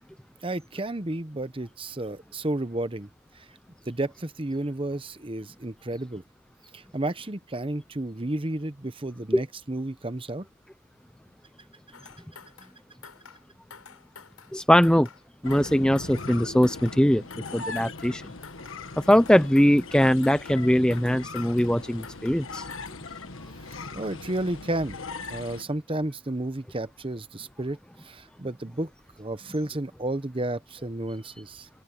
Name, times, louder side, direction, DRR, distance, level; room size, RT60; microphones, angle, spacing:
voice 1, 0.4-3.1 3.3-3.5 3.9-6.2 6.7-10.5 23.6-25.0 25.3-28.9 29.2-31.7, right 1 dB, 25° right, 0.9 m, -32 dB
sound 1, 11.9-12.8 13.0-13.5 13.7-14.6 14.8-15.3 15.5-16.4 16.6-17.1 17.3-18.2 18.4-18.9 19.1-20.0 20.2-20.7 20.9-21.8 22.0-22.5 22.7-23.1, left 6 dB, 75° left, 6.1 m, -49 dB
voice 2, 14.5-15.1 15.4-18.2 19.1-22.7, equal, 5° left, 0.5 m, -21 dB
sound 2, 15.4-25.6, left 3 dB, 60° left, 1.5 m, -40 dB
open air
head